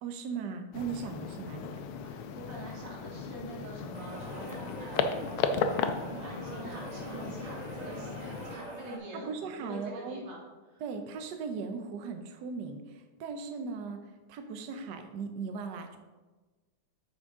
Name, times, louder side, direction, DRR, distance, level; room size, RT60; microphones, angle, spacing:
voice 1, 0.0-1.7 9.3-10.2 10.8-16.0, right 5 dB, 65° right, 6 dB, 1.1 m, -38 dB
sound 1, 0.7-8.6, left 6 dB, 85° left, 1.5 m, -35 dB
voice 2, 2.0-5.9 6.2-10.4 10.7-10.8, right 1 dB, 90° right, -3 dB, 2.9 m, -46 dB
sound 2, 3.9-9.0, right 2 dB, 30° right, 0.7 m, -43 dB
9.1 x 6.2 x 3.7 m, 1.2 s
omnidirectional pair, 2.4 m